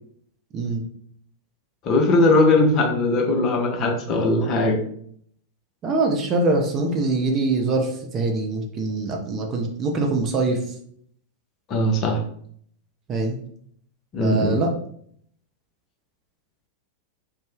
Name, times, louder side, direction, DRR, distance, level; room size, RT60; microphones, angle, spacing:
voice 1, 0.5-0.8 5.8-10.7 13.1-13.4 14.2-14.7, right 3 dB, 30° right, 2 dB, 0.5 m, -23 dB
voice 2, 1.8-4.8 11.7-12.2 14.1-14.6, left 2 dB, 35° left, 1 dB, 0.6 m, -19 dB
2.6 x 2.1 x 3.3 m, 0.63 s
figure-of-eight pair, 90°, 0 cm